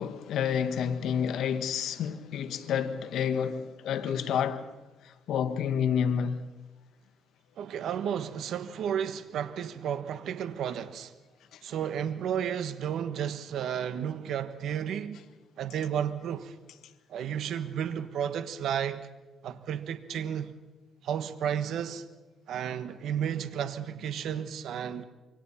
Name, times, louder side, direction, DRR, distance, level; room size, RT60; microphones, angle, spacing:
voice 1, 0.0-4.7 5.3-6.4, left 8 dB, 80° left, 1.4 m, -29 dB
voice 2, 7.6-11.1 11.6-15.2 15.6-16.5 17.1-19.1 19.4-20.5 21.0-22.0 22.5-25.0, right 9 dB, 75° right, 1.3 m, -32 dB
27.0 x 24.0 x 4.3 m
cardioid pair, 90°, 0 cm